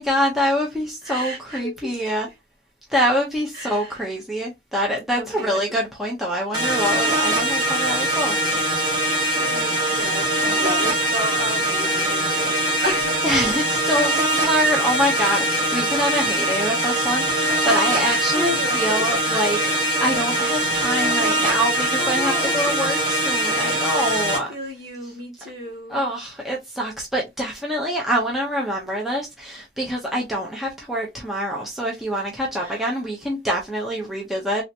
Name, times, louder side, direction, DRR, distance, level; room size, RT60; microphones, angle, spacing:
voice 1, 0.0-2.3 2.9-8.4 13.2-19.6 20.0-24.5 25.9-34.6, equal, ahead, 0.7 m, -25 dB
voice 2, 1.0-2.1 3.5-4.0 5.2-5.8 9.0-13.5 18.0-19.5 21.7-23.0 24.0-26.1 32.6-32.9, right 1 dB, 50° right, 2.0 m, -33 dB
sound 1, 6.5-24.4, right 1 dB, 25° right, 1.2 m, -22 dB
3.3 x 2.8 x 2.7 m
head